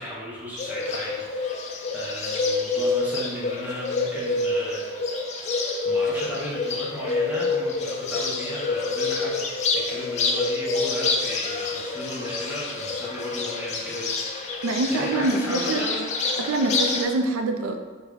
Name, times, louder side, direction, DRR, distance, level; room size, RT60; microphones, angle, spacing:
voice 1, 0.0-5.3 5.8-9.5 9.7-14.5 14.9-16.1, equal, 10° right, -6 dB, 0.7 m, -35 dB
Bird, 0.6-17.0, left 3 dB, 35° left, 0.3 m, -27 dB
voice 2, 14.6-15.8 16.4-17.8, right 2 dB, 85° right, 6 dB, 0.4 m, -25 dB
3.4 x 2.1 x 3.6 m, 1.4 s
head